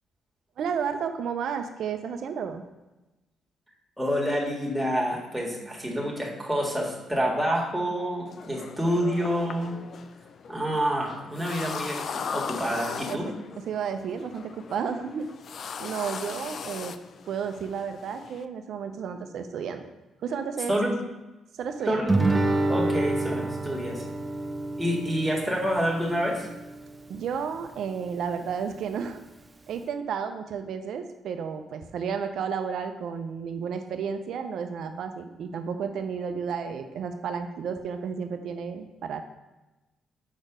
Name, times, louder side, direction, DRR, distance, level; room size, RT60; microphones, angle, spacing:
voice 1, 0.6-2.6 13.1-13.3 13.7-15.3 15.8-16.9 17.3-19.9 20.2-20.7 21.6-22.0 27.1-29.2 29.7-39.2, right 6 dB, 70° right, 7 dB, 0.6 m, -32 dB
voice 2, 4.0-9.8 10.5-13.3 20.7-20.9 21.8-22.1 22.7-24.1 24.8-26.5, equal, ahead, -3 dB, 1.7 m, -28 dB
sound 1, 8.3-18.5, left 6 dB, 55° left, 0.4 m, -39 dB
Guitar, 22.1-27.2, right 2 dB, 20° right, 0.5 m, -28 dB
6.1 x 4.5 x 5.0 m, 1.1 s
cardioid pair, 90°, 0 cm